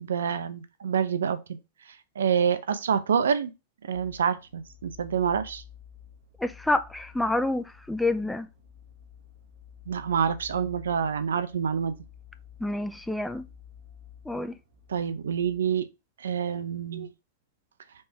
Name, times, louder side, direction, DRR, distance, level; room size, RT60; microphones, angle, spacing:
voice 1, 0.0-1.4 2.2-3.5 3.9-5.6 9.9-11.9 14.9-15.9 16.2-17.1, right 7 dB, 75° right, 0.5 m, -27 dB
sound 1, 3.9-15.6, left 8 dB, 55° right, 1.2 m, -51 dB
voice 2, 6.4-8.5 12.6-13.4 14.3-14.5, left 2 dB, 5° left, 0.4 m, -28 dB
4.3 x 3.4 x 3.2 m
figure-of-eight pair, 105°, 0 cm